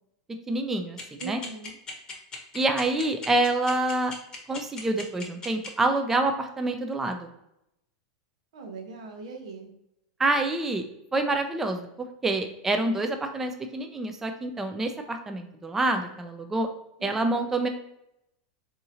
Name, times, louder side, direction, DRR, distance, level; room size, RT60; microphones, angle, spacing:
voice 1, 0.5-1.4 2.5-4.1 4.5-7.3 10.2-10.8 11.1-11.9 12.2-16.7 17.0-17.7, right 2 dB, 10° right, 6 dB, 0.3 m, -27 dB
sound 1, 1.0-5.7, left 4 dB, 20° left, 0.9 m, -37 dB
voice 2, 1.2-1.7 8.5-9.7 17.0-17.5, right 4 dB, 85° right, 3 dB, 0.9 m, -40 dB
3.7 x 2.8 x 2.7 m, 0.81 s
supercardioid pair, 145°, 3 cm